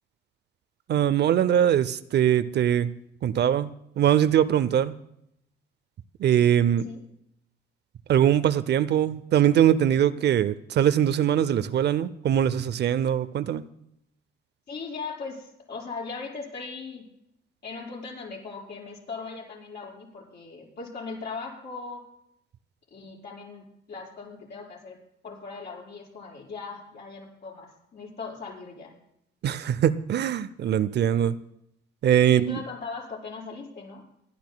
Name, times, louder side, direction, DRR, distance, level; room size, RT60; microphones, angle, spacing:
voice 1, 0.9-2.9 3.2-5.0 6.2-6.8 8.1-13.6 29.4-31.4 32.0-32.6, right 10 dB, 60° right, 14 dB, 0.5 m, -22 dB
voice 2, 14.7-17.0 17.6-22.0 22.9-25.0 25.2-28.9 32.3-34.0, left 4 dB, 55° left, -5 dB, 5.6 m, -39 dB
27.0 x 12.0 x 2.3 m, 0.75 s
cardioid pair, 90°, 20 cm